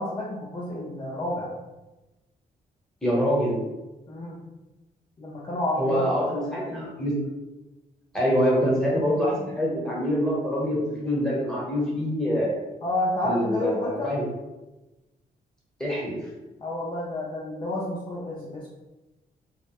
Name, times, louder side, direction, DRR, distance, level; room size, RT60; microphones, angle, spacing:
voice 1, 0.0-1.5 4.1-4.4 5.2-6.9 12.8-14.1 16.6-18.7, left 1 dB, 30° left, -5 dB, 0.4 m, -30 dB
voice 2, 3.0-3.6 5.8-7.1 8.1-12.5 13.2-14.2 15.8-16.2, equal, 5° left, -5 dB, 0.9 m, -25 dB
2.1 x 2.0 x 2.8 m, 1.1 s
cardioid pair, 80°, 17 cm